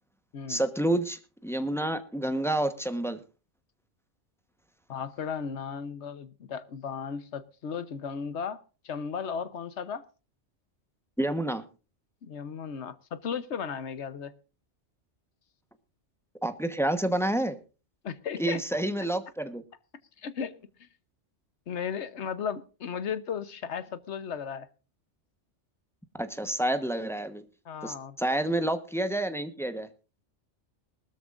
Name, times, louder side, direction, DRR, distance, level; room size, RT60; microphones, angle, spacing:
voice 1, 0.5-3.2 11.2-11.6 16.4-17.6 18.4-19.6 26.2-27.4 27.8-29.9, right 1 dB, ahead, 1.0 m, -29 dB
voice 2, 4.9-10.0 12.2-14.3 18.0-18.6 20.2-20.9 21.7-24.7 27.6-28.2, left 7 dB, 70° left, 1.2 m, -35 dB
20.0 x 13.0 x 2.5 m
omnidirectional pair, 1.2 m